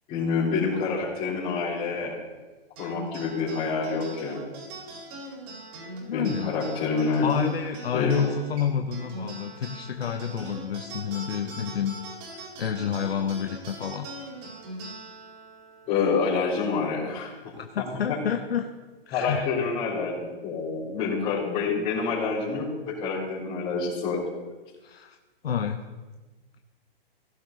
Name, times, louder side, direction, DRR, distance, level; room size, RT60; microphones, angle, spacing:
voice 1, 0.1-2.2 2.8-4.4 6.1-7.4 7.9-8.2 15.9-17.5 19.1-24.2, left 4 dB, 25° left, -12 dB, 4.5 m, -27 dB
sound 1, 2.8-17.5, right 2 dB, 40° right, 5.2 m, -42 dB
voice 2, 6.1-6.5 7.2-12.0 12.3-14.1 17.5-18.7 19.1-19.5 24.8-25.2 25.4-25.8, left 8 dB, 80° left, 6 dB, 1.0 m, -29 dB
16.0 x 11.5 x 4.1 m, 1.2 s
hypercardioid pair, 140°, 30 cm